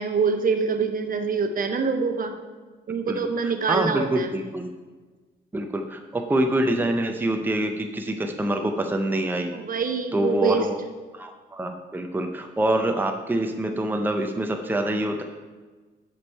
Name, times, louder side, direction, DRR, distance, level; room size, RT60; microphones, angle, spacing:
voice 1, 0.0-2.3 2.9-4.3 9.5-10.6, right 5 dB, 45° right, 6 dB, 0.7 m, -25 dB
voice 2, 3.1-4.7 5.5-9.5 10.1-10.8 11.1-15.2, right 1 dB, 10° right, 4 dB, 0.6 m, -26 dB
6.3 x 5.9 x 4.6 m, 1.3 s
cardioid pair, 90°, 20 cm